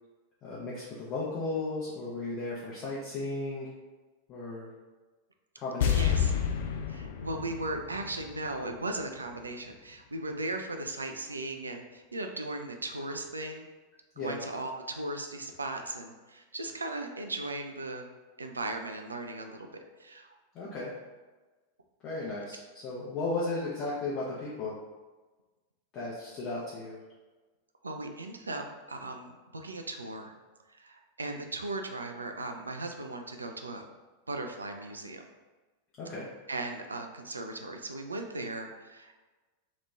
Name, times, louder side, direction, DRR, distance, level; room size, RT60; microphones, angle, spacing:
voice 1, 0.4-3.7 4.3-4.7 5.6-6.2 14.2-14.4 20.5-20.9 22.0-24.8 25.9-27.0 36.0-36.3, left 2 dB, 35° left, -7 dB, 0.7 m, -35 dB
sound 1, 5.8-9.0 9.3-9.4, left 8 dB, 55° left, 0.3 m, -30 dB
voice 2, 5.8-6.3 6.9-13.7 14.2-18.1 18.4-20.3 27.8-30.3 30.8-33.8 34.3-35.2 36.5-39.2, right 2 dB, 75° right, 4 dB, 0.4 m, -37 dB
3.0 x 2.5 x 3.3 m, 1.2 s
figure-of-eight pair, 90°, 0 cm